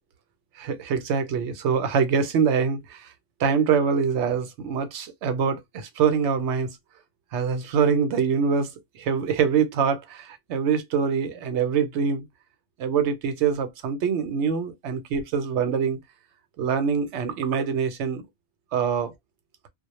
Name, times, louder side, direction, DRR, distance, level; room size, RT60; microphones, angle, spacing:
voice 1, 0.6-3.1 3.4-6.8 7.3-12.2 12.8-16.0 16.6-18.2 18.7-19.1, right 6 dB, 70° right, 0.8 m, -24 dB
2.1 x 2.1 x 2.9 m
omnidirectional pair, 1.3 m